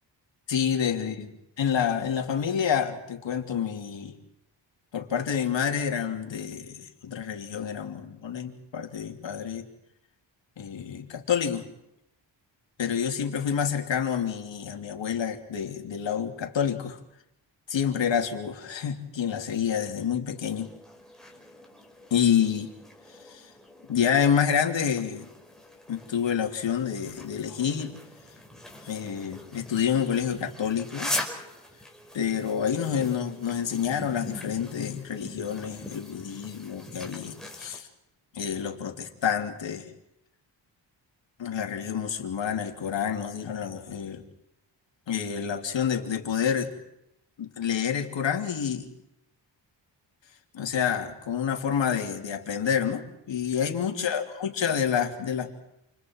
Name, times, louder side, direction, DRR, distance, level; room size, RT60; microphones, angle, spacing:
voice 1, 0.5-1.3 1.6-4.1 4.9-9.7 10.6-11.7 12.8-17.0 17.7-20.7 22.1-22.7 23.2-23.5 23.9-25.3 25.9-27.9 28.8-31.1 32.1-37.9 38.3-39.9 41.4-44.2 45.1-46.7 47.4-48.9 50.5-55.5, left 8 dB, 75° left, 4 dB, 3.3 m, -28 dB
sound 1, 20.4-37.8, left 1 dB, ahead, 4.9 m, -41 dB
29.5 x 29.0 x 4.7 m, 0.84 s
wide cardioid pair, 105°, 44 cm